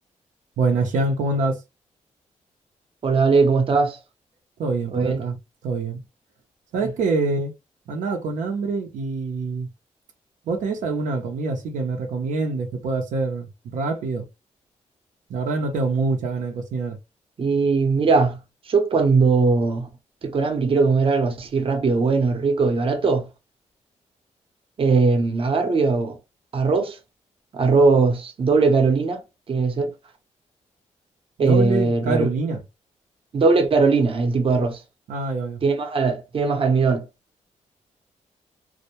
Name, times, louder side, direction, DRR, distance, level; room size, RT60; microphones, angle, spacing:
voice 1, 0.6-1.6 4.6-5.4 5.6-6.0 6.7-7.5 7.9-9.7 10.5-14.3 15.3-17.0 31.4-32.6 35.1-35.6, right 3 dB, 85° right, 0.6 m, -25 dB
voice 2, 3.0-4.0 4.9-5.2 17.4-18.4 18.7-19.9 20.2-23.3 24.8-26.2 26.5-27.0 27.5-29.2 29.5-29.9 31.4-32.3 33.3-34.8 35.6-37.0, right 4 dB, 45° right, 0.7 m, -19 dB
2.1 x 2.1 x 2.8 m
cardioid pair, 85°, 13 cm